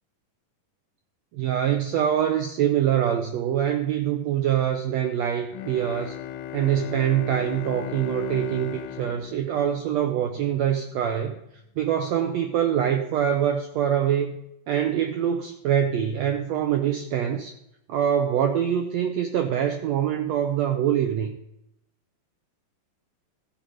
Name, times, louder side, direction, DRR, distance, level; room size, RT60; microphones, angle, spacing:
voice 1, 1.3-6.1 6.5-11.3 11.8-14.3 14.7-17.5 17.9-21.4, right 9 dB, 85° right, 5 dB, 1.5 m, -24 dB
Bowed string instrument, 5.5-10.5, left 9 dB, 80° left, 2.1 m, -37 dB
14.5 x 5.4 x 6.2 m, 0.82 s
omnidirectional pair, 3.9 m